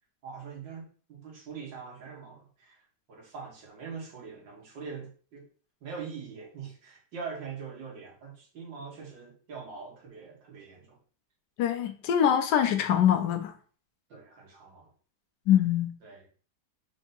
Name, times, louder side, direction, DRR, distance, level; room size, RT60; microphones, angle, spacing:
voice 1, 0.2-2.8 3.1-5.4 5.8-11.0 14.1-14.9 16.0-16.3, right 5 dB, 80° right, -2 dB, 2.1 m, -43 dB
voice 2, 11.6-13.5 15.5-15.9, left 9 dB, 75° left, 8 dB, 1.2 m, -24 dB
4.6 x 2.8 x 3.9 m, 0.41 s
omnidirectional pair, 2.0 m